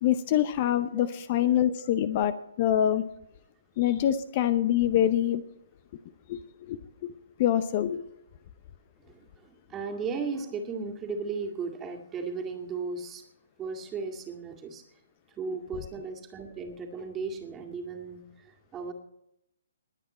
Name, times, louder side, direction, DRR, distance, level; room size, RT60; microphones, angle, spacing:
voice 1, 0.0-2.3 2.6-3.0 3.8-5.4 6.3-7.1 7.4-8.1 15.5-15.6, left 11 dB, 40° left, 13 dB, 0.7 m, -25 dB
voice 2, 9.0-13.2 13.6-14.8 15.4-18.9, right 4 dB, 15° right, 2 dB, 2.1 m, -36 dB
20.5 x 8.7 x 4.3 m, 0.79 s
figure-of-eight pair, 135°, 0 cm